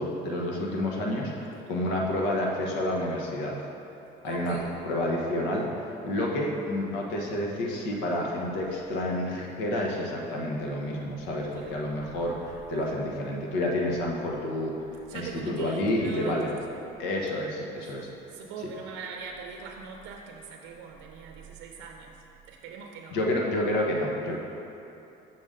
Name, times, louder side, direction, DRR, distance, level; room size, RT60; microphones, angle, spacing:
voice 1, 0.0-3.6 4.2-4.6 4.8-5.6 6.0-14.7 15.1-16.5 17.0-18.1 23.1-24.4, left 1 dB, 85° left, -2 dB, 1.2 m, -29 dB
voice 2, 4.2-4.8 11.5-11.8 15.1-16.7 17.8-22.1 22.5-24.1, right 5 dB, 85° right, 1 dB, 0.6 m, -42 dB
6.6 x 6.0 x 3.7 m, 2.9 s
cardioid pair, 135°, 18 cm